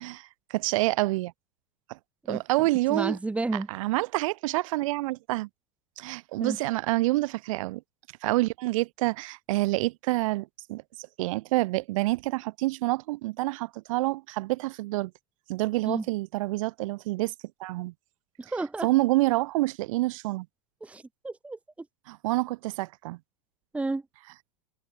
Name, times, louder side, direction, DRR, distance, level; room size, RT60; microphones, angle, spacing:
voice 1, 0.0-1.3 1.9-2.0 2.3-3.2 3.7-5.5 6.0-7.8 8.2-10.8 11.2-15.1 15.5-17.3 17.6-17.9 18.8-20.5 22.1-23.2, right 20 dB, 60° right, 1.2 m, -27 dB
voice 2, 2.9-3.7 6.4-6.6 15.9-16.0 18.4-18.9 20.8-21.6 23.7-24.0, right 3 dB, 5° right, 1.6 m, -31 dB
supercardioid pair, 140°, 19 cm